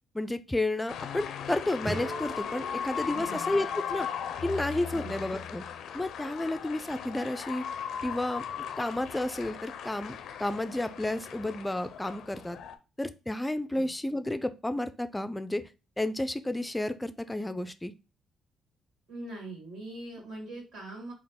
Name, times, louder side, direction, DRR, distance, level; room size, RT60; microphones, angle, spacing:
voice 1, 0.1-4.1 4.4-5.6 5.9-7.6 8.0-8.4 8.8-12.6 13.0-15.6 16.0-17.9, left 1 dB, 10° left, 12 dB, 0.4 m, -31 dB
sound 1, 0.9-12.8, left 8 dB, 75° left, 0.4 m, -38 dB
sound 2, 1.8-4.7, right 1 dB, 20° right, 0.9 m, -42 dB
voice 2, 3.1-3.5 4.9-5.3 13.7-13.9 19.1-21.1, right 2 dB, 70° right, -2 dB, 2.0 m, -42 dB
3.9 x 2.4 x 3.6 m, 0.31 s
cardioid pair, 90°, 0 cm